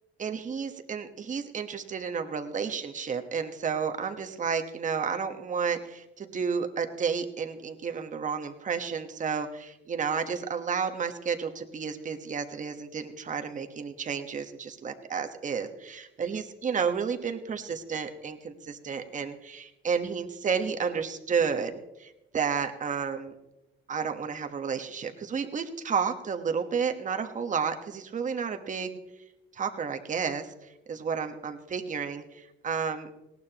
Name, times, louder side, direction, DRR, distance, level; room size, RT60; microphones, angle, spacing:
voice 1, 0.2-23.3 23.9-28.9 29.5-30.5 30.9-32.2 32.6-33.1, right 6 dB, 40° right, 6 dB, 1.2 m, -31 dB
19.5 x 17.5 x 3.0 m, 0.93 s
cardioid pair, 120°, 21 cm